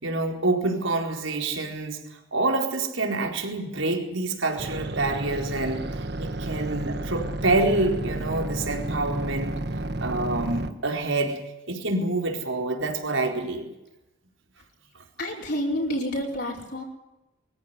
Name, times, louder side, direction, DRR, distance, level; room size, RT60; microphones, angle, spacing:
voice 1, 0.0-2.0 2.3-9.6 10.0-11.4 11.7-13.7, right 2 dB, 70° right, 3 dB, 4.3 m, -27 dB
sound 1, 4.6-10.7, right 1 dB, 55° right, 1.3 m, -31 dB
voice 2, 15.2-16.8, equal, 50° left, -2 dB, 5.2 m, -28 dB
23.5 x 14.5 x 9.9 m, 0.96 s
head